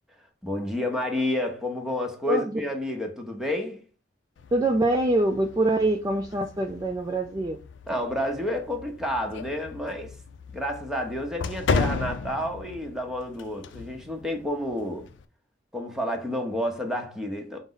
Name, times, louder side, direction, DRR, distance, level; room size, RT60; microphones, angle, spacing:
voice 1, 0.4-3.8 7.9-10.1 10.5-15.1 15.7-17.6, left 1 dB, 5° right, 0.7 m, -30 dB
voice 2, 2.3-2.6 4.5-7.6, right 2 dB, 20° right, 0.3 m, -24 dB
sound 1, 4.4-15.2, left 4 dB, 85° left, 0.4 m, -35 dB
5.2 x 2.0 x 3.8 m
head